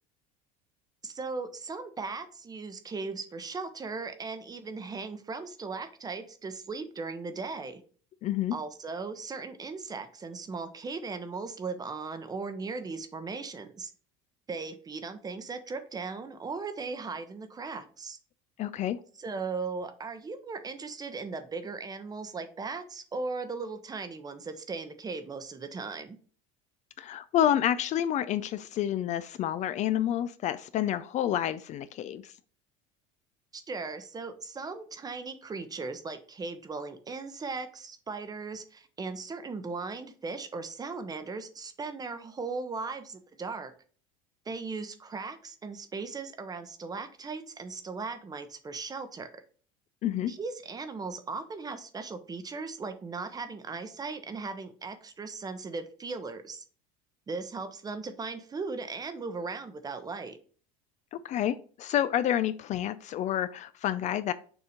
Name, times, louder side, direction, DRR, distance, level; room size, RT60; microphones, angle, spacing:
voice 1, 1.0-7.8 8.5-13.9 14.5-18.2 19.2-26.2 33.5-43.7 44.5-49.4 50.3-56.6 57.3-60.4, right 4 dB, 20° right, 10 dB, 0.8 m, -38 dB
voice 2, 8.2-8.5 18.6-19.0 27.0-32.3 50.0-50.3 61.1-64.3, left 11 dB, 45° left, 13 dB, 0.4 m, -29 dB
6.9 x 2.8 x 5.0 m, 0.43 s
supercardioid pair, 110°, 18 cm